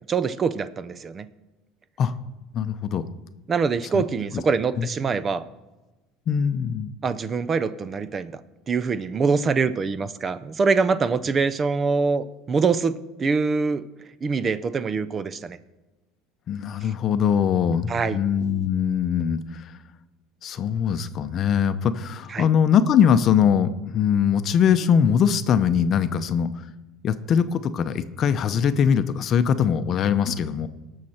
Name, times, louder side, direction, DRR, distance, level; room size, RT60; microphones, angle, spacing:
voice 1, 0.1-1.3 3.5-5.4 7.0-8.3 8.7-13.8 14.2-15.6 16.8-16.9 17.9-18.2 22.3-22.5, right 5 dB, 30° right, 14 dB, 0.5 m, -24 dB
voice 2, 2.5-3.0 3.9-4.0 4.3-4.4 4.8-4.9 6.3-6.9 16.5-19.6 20.4-26.5 27.0-30.7, left 8 dB, 45° left, 11 dB, 0.7 m, -22 dB
18.5 x 6.5 x 4.3 m, 1.1 s
supercardioid pair, 125°, 0 cm